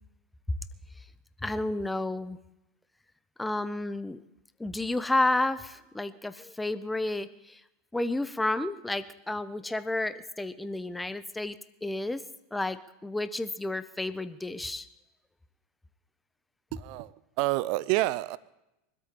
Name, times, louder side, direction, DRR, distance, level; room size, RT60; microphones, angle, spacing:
voice 1, 1.4-2.4 3.4-4.2 4.6-7.6 7.9-11.6 11.8-12.2 12.5-14.9, left 2 dB, 10° left, 14 dB, 1.0 m, -31 dB
voice 2, 16.7-18.4, right 19 dB, 50° right, 19 dB, 0.8 m, -28 dB
24.0 x 13.0 x 4.3 m, 0.90 s
figure-of-eight pair, 80°, 0 cm